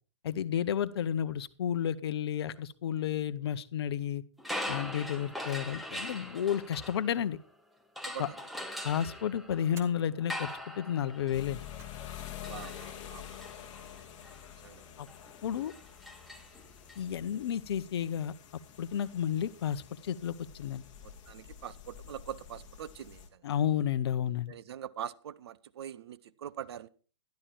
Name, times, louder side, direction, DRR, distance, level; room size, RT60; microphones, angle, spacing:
voice 1, 0.2-4.2 4.7-7.4 8.2-8.3 8.8-10.5 10.8-11.6 15.0-15.1 15.4-15.7 17.0-18.3 18.8-20.8 23.4-24.5, left 9 dB, 55° left, 1.0 m, -32 dB
sound 1, 4.4-7.5 8.0-17.0, left 1 dB, ahead, 1.2 m, -42 dB
voice 2, 8.0-8.4 12.5-13.5 14.6-14.8 21.0-23.4 24.5-26.9, right 9 dB, 55° right, 0.7 m, -43 dB
sound 2, 9.7-10.1 11.3-12.1 12.3-12.4 13.5-14.1, right 5 dB, 15° right, 1.6 m, -55 dB
sound 3, 11.3-23.3, left 10 dB, 25° left, 2.2 m, -48 dB
12.0 x 12.0 x 4.5 m
hypercardioid pair, 130°, 16 cm